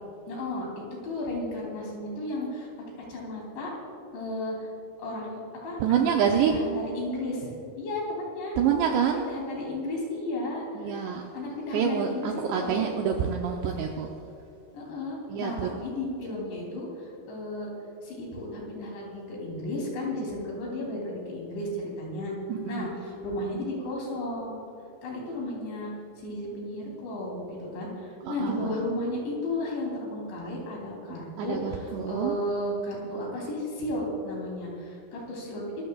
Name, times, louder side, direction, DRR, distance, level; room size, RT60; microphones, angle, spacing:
voice 1, 0.3-2.7 3.1-3.7 4.1-4.7 5.0-7.5 7.8-8.6 8.9-11.0 11.3-12.9 14.7-17.7 18.0-22.3 22.7-24.6 25.0-25.9 26.2-35.9, left 1 dB, 60° left, -3 dB, 5.3 m, -34 dB
voice 2, 5.8-6.6 8.6-9.2 10.8-11.3 11.7-14.2 15.3-15.7 22.5-23.0 28.2-28.8 31.4-32.4, right 8 dB, 85° right, 1 dB, 2.5 m, -27 dB
26.0 x 14.5 x 2.4 m, 2.8 s
omnidirectional pair, 5.9 m